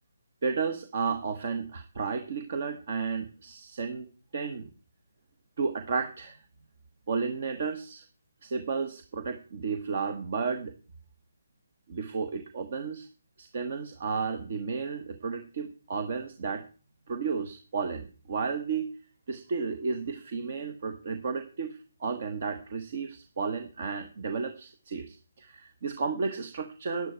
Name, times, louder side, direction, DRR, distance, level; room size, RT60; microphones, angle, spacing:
voice 1, 0.4-4.1 4.3-4.7 5.6-6.4 7.1-8.0 8.4-10.7 11.9-13.1 13.4-16.6 17.1-18.9 19.3-27.1, right 5 dB, 45° right, 8 dB, 1.3 m, -33 dB
11.5 x 11.0 x 4.6 m, 0.36 s
figure-of-eight pair, 145°, 0 cm